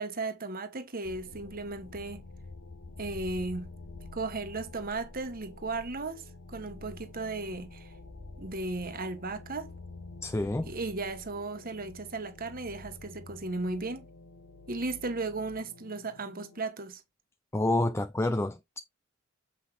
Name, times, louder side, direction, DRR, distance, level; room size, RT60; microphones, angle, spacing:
voice 1, 0.0-2.2 3.0-3.7 4.1-7.9 8.4-9.7 10.7-14.1 14.7-17.0, right 3 dB, 40° right, 1.3 m, -35 dB
sound 1, 1.0-16.6, left 2 dB, 70° left, 0.9 m, -48 dB
voice 2, 10.2-10.7 17.5-18.8, left 2 dB, 10° left, 0.4 m, -28 dB
7.6 x 5.9 x 3.3 m
head